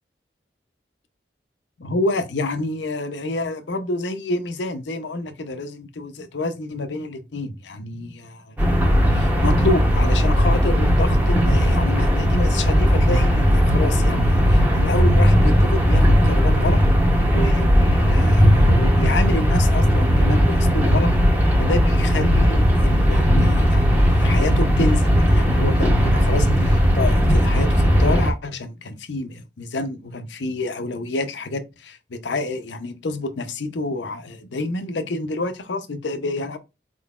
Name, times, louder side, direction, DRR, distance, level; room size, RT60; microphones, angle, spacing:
voice 1, 1.8-8.6 8.8-16.8 17.3-21.1 21.6-36.6, left 2 dB, 80° left, 0.6 m, -28 dB
sound 1, 8.6-28.3, equal, 10° right, 0.8 m, -17 dB
4.4 x 3.8 x 2.3 m
head